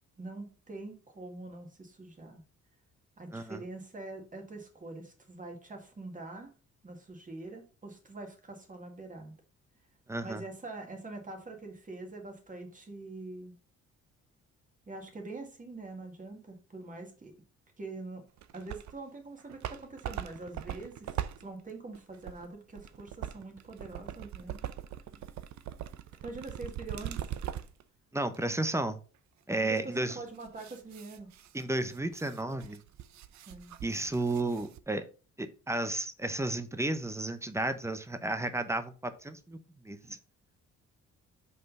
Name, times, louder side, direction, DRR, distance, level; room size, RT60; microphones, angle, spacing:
voice 1, 0.2-2.4 3.2-6.5 6.8-9.3 10.2-13.6 14.9-17.3 17.8-18.2 18.5-24.6 26.2-27.4 29.6-31.3 33.5-33.8 40.0-40.1, right 2 dB, 25° right, 2.0 m, -44 dB
voice 2, 10.1-10.4 28.1-29.0 29.5-30.2 31.5-32.8 33.8-35.0 35.4-39.6 39.8-40.0, right 2 dB, 10° right, 0.8 m, -32 dB
sound 1, 18.4-19.0 19.4-27.8 28.3-28.4 30.0-34.8, right 11 dB, 65° right, 0.6 m, -41 dB
5.5 x 3.9 x 5.3 m
cardioid pair, 90°, 30 cm